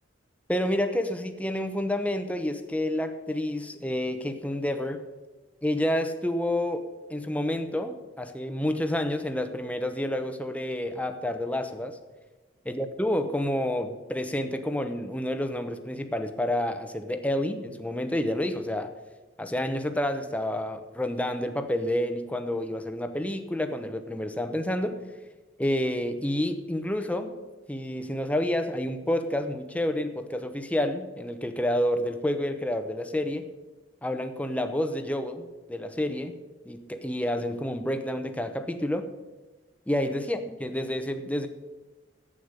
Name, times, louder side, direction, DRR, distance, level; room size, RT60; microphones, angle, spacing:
voice 1, 0.5-5.0 5.6-12.0 12.7-18.9 19.4-25.0 25.6-27.3 27.7-33.5 34.0-36.4 36.6-39.1 39.9-41.5, left 1 dB, 10° left, 8 dB, 0.9 m, -29 dB
11.5 x 8.7 x 6.6 m, 1.2 s
head